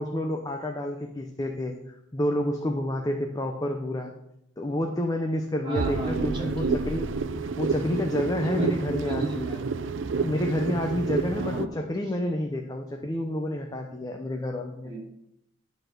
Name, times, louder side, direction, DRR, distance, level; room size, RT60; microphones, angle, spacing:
voice 1, 0.0-4.1 4.6-7.1 7.6-9.5 10.2-14.9, left 1 dB, 20° left, 2 dB, 0.7 m, -29 dB
voice 2, 5.6-6.7 8.4-9.6 11.3-11.7 14.8-15.0, right 2 dB, 25° right, -5 dB, 3.4 m, -33 dB
sound 1, 5.7-11.7, right 4 dB, 75° right, 0.5 m, -30 dB
11.5 x 4.2 x 6.7 m, 0.80 s
head